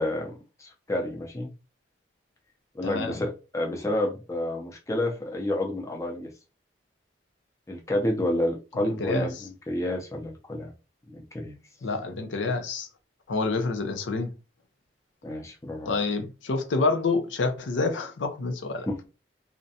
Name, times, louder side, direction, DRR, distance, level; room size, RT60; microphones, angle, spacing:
voice 1, 0.0-1.5 2.7-6.3 7.7-10.7 11.1-11.5 15.2-16.0 18.9-19.0, left 1 dB, 15° left, 0.5 m, -30 dB
voice 2, 2.8-3.2 8.7-9.5 11.8-12.9 13.3-14.3 15.9-18.9, left 3 dB, 90° left, 0.5 m, -28 dB
2.5 x 2.1 x 2.7 m
head